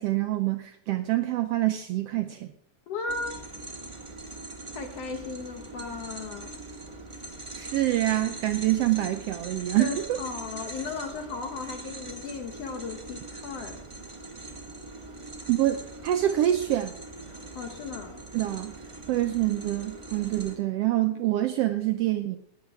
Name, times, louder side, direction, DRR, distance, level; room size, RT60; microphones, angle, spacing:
voice 1, 0.0-2.5 7.5-10.2 15.5-16.9 18.3-18.8 19.1-22.4, right 14 dB, 90° right, 7 dB, 1.4 m, -26 dB
voice 2, 2.9-3.4 4.8-6.6 9.8-13.8 17.3-18.2, left 4 dB, 65° left, 6 dB, 1.9 m, -36 dB
sound 1, 3.1-20.6, right 2 dB, 45° right, 0.4 m, -42 dB
14.0 x 9.7 x 4.8 m, 0.67 s
omnidirectional pair, 3.4 m